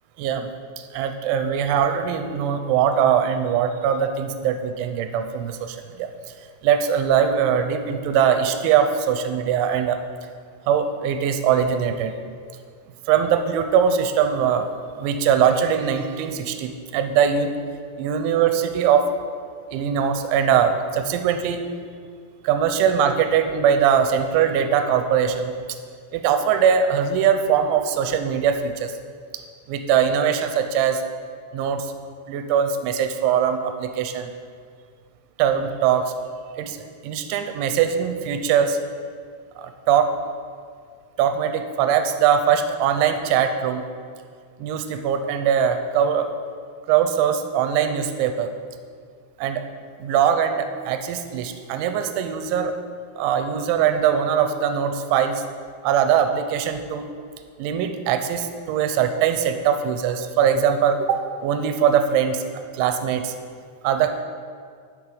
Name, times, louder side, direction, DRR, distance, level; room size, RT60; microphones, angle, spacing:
voice 1, 0.2-0.5 0.8-6.1 6.6-10.0 10.7-12.1 13.1-14.7 15.0-17.5 18.0-19.1 19.7-21.6 22.4-25.5 26.1-28.9 29.3-29.4 29.7-31.0 31.5-31.9 32.3-34.3 35.4-36.1 36.6-36.8 37.0-38.8 39.6-40.1 41.2-43.8 44.6-46.3 46.9-48.5 49.4-49.6 50.0-52.7 53.2-55.4 55.8-57.1 57.6-62.5 62.7-63.3 63.8-64.2, right 8 dB, 85° right, 8 dB, 3.0 m, -21 dB
11.0 x 7.1 x 5.0 m, 2.1 s
omnidirectional pair, 5.4 m